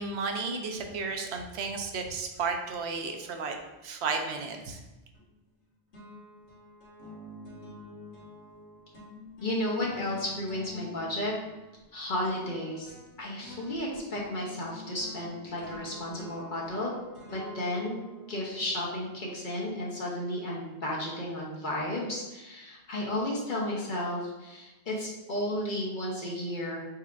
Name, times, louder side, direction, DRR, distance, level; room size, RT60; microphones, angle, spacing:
voice 1, 0.0-3.6 3.8-4.8, right 4 dB, 75° right, 4 dB, 0.9 m, -33 dB
sound 1, 5.1-5.6 5.9-19.3, left 2 dB, 85° left, 1.5 m, -48 dB
voice 2, 9.4-11.3 11.9-16.9 17.3-18.0 18.3-26.8, left 1 dB, 50° left, -4 dB, 1.0 m, -33 dB
4.6 x 4.5 x 2.4 m, 1.1 s
omnidirectional pair, 1.1 m